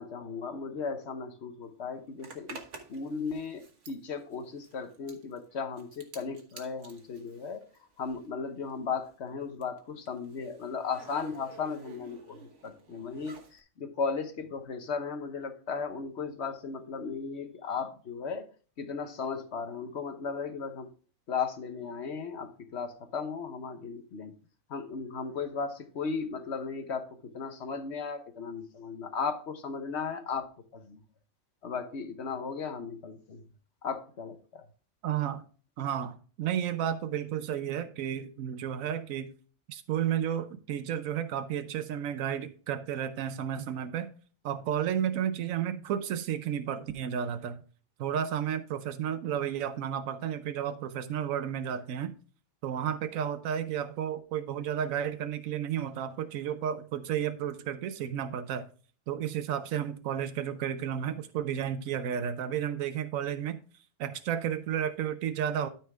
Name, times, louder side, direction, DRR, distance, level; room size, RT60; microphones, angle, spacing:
voice 1, 0.0-2.6 2.9-7.6 8.0-12.4 12.6-18.5 18.8-20.9 21.3-24.3 24.7-31.0 31.6-33.4 33.8-34.7, left 5 dB, 60° left, 1.2 m, -36 dB
Zipper (clothing), 2.2-8.4 8.6-13.6, right 4 dB, 65° right, 1.6 m, -51 dB
voice 2, 35.0-35.4 35.8-39.3 39.7-44.1 44.4-47.6 48.0-52.1 52.6-58.7 59.1-63.6 64.0-65.7, right 9 dB, 90° right, 1.1 m, -32 dB
12.5 x 4.5 x 3.5 m
omnidirectional pair, 1.4 m